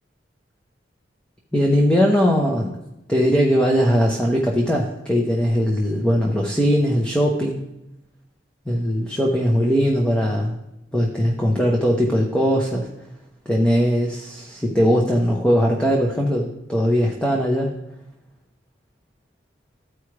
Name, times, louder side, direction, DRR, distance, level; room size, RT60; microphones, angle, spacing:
voice 1, 1.5-2.8 3.1-7.7 8.7-10.6 10.9-12.9 13.5-17.8, equal, 5° left, -1 dB, 0.7 m, -20 dB
13.0 x 4.8 x 3.2 m, 0.89 s
head